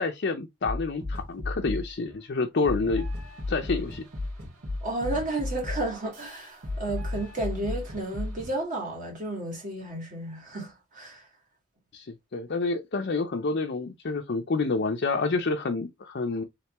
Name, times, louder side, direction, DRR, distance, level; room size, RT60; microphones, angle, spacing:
voice 1, 0.0-3.1 3.5-4.0 11.9-16.4, left 3 dB, 50° left, 0.5 m, -28 dB
sound 1, 0.6-1.9 2.6-8.6, left 2 dB, 85° right, 2.1 m, -34 dB
voice 2, 4.8-11.2, right 2 dB, 40° right, 2.0 m, -32 dB
3.6 x 3.4 x 3.0 m
head